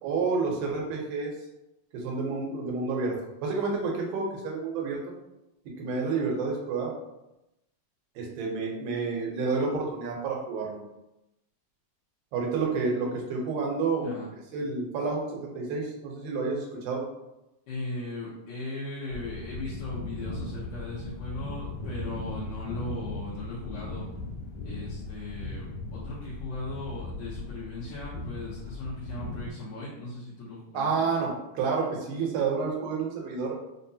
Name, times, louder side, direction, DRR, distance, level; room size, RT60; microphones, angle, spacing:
voice 1, 0.0-1.3 1.9-3.2 3.4-5.0 5.8-6.9 8.2-10.8 12.3-14.2 14.5-17.1 30.7-33.5, right 4 dB, 85° right, -1 dB, 2.8 m, -29 dB
voice 2, 17.7-24.1 24.6-31.1, left 2 dB, 75° left, -9 dB, 2.4 m, -38 dB
sound 1, 19.1-29.5, left 3 dB, 55° left, 1.0 m, -38 dB
6.2 x 2.1 x 2.7 m, 0.91 s
omnidirectional pair, 4.2 m